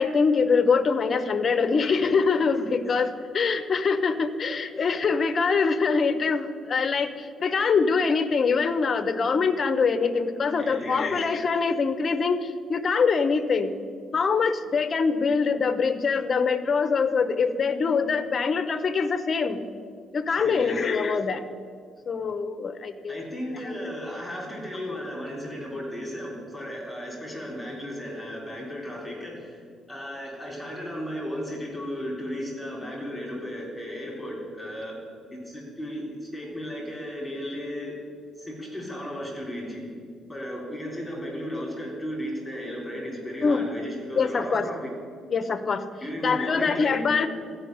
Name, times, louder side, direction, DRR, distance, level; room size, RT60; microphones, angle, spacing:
voice 1, 0.0-13.7 14.1-19.6 20.1-21.4 22.1-23.3 43.4-43.7 44.2-44.7 45.3-45.8 46.2-47.3, left 5 dB, 30° left, 10 dB, 0.7 m, -24 dB
voice 2, 10.6-11.2 20.4-20.8 23.1-29.6 29.9-34.9 35.3-37.9 38.4-39.9 40.3-44.9 46.0-47.0, equal, 5° left, -3 dB, 3.6 m, -35 dB
13.5 x 5.5 x 9.4 m, 2.1 s
cardioid pair, 160°, 0 cm